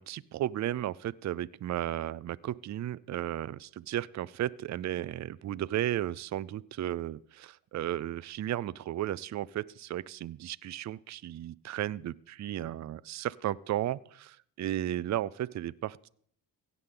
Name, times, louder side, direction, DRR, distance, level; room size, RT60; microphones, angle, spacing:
voice 1, 0.0-16.1, right 12 dB, 40° right, 20 dB, 0.4 m, -34 dB
16.5 x 8.4 x 3.8 m, 0.62 s
cardioid pair, 85°, 46 cm